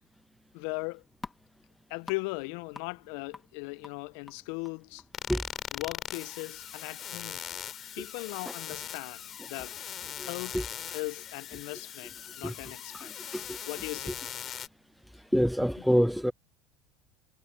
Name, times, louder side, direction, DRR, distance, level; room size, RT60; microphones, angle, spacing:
voice 1, 0.5-1.0 1.9-5.0 5.7-7.6 7.9-9.8 10.2-10.6 10.9-14.2, left 28 dB, 65° left, 1.1 m, -39 dB
sound 1, 0.6-7.4, left 4 dB, 20° left, 2.9 m, -51 dB
sound 2, 5.1-14.7, left 10 dB, 40° left, 6.0 m, -40 dB
voice 2, 15.3-16.3, equal, ahead, 0.3 m, -24 dB
hypercardioid pair, 75°, 0 cm